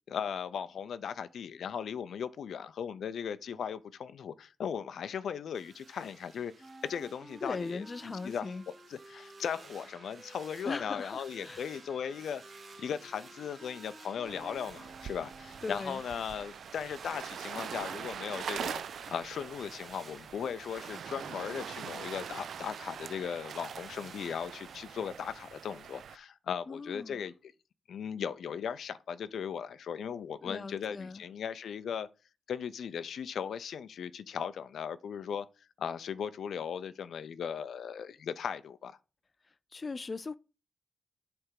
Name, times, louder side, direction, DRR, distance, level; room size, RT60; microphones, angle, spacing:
voice 1, 0.1-6.5 6.8-8.5 8.9-12.4 12.8-18.8 19.1-27.5 27.9-32.1 32.5-35.5 35.8-38.9, left 7 dB, 85° left, 0.5 m, -37 dB
sound 1, 5.5-24.8, right 4 dB, 55° right, 1.1 m, -55 dB
sound 2, 6.6-15.8, right 1 dB, 15° right, 1.3 m, -54 dB
voice 2, 7.4-8.6 10.6-11.6 15.6-16.0 26.7-27.2 30.4-31.2 39.7-40.4, left 4 dB, 35° left, 0.3 m, -39 dB
sound 3, 14.3-26.2, right 8 dB, 85° right, 0.3 m, -43 dB
7.9 x 3.4 x 5.8 m
wide cardioid pair, 120°, 0 cm